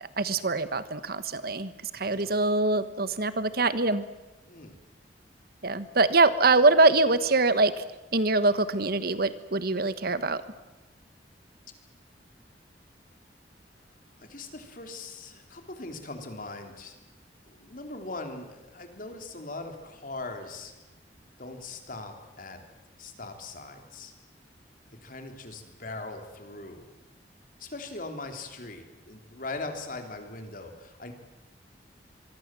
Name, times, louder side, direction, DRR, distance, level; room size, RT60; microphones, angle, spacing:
voice 1, 0.2-4.0 5.6-7.7 8.1-10.4, right 3 dB, 60° right, 13 dB, 1.3 m, -24 dB
voice 2, 1.9-2.4 4.5-4.8 14.2-17.0 17.5-20.7 21.4-22.6 23.0-24.1 25.0-26.9 27.6-31.1, left 3 dB, 50° left, 5 dB, 3.5 m, -40 dB
25.0 x 23.5 x 7.6 m, 1.0 s
head